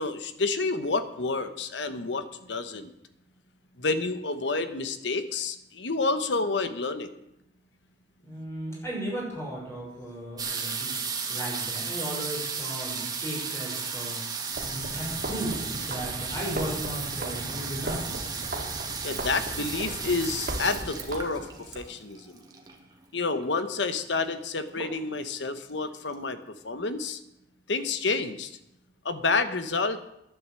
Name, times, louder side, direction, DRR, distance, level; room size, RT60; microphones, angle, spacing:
voice 1, 0.0-2.9 3.8-7.1 19.0-22.4 23.1-26.4 26.6-27.2 27.7-28.5 29.0-30.0, left 3 dB, 75° left, 10 dB, 1.1 m, -29 dB
voice 2, 8.2-11.0 11.3-14.2 14.6-18.1, right 1 dB, 15° left, -3 dB, 6.0 m, -36 dB
sound 1, 10.4-22.9 23.7-23.8 24.0-24.4 24.7-25.3 25.8-25.9 26.1-26.2, right 5 dB, 20° right, 2.0 m, -34 dB
sound 2, 14.5-21.8, right 1 dB, 55° right, 2.3 m, -37 dB
11.5 x 10.0 x 7.7 m, 0.85 s
head